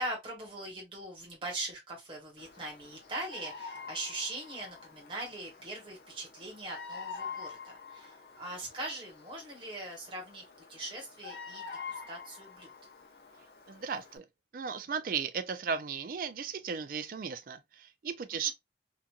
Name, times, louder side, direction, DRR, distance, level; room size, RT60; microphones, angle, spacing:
voice 1, 0.0-10.4 10.7-12.7 18.4-18.5, right 2 dB, 30° right, 1.0 m, -41 dB
Bird vocalization bird call bird song, 2.4-14.2, left 5 dB, 65° left, 0.7 m, -47 dB
voice 2, 13.7-14.2 14.5-18.5, right 6 dB, 50° right, 0.3 m, -36 dB
2.8 x 2.5 x 2.2 m
head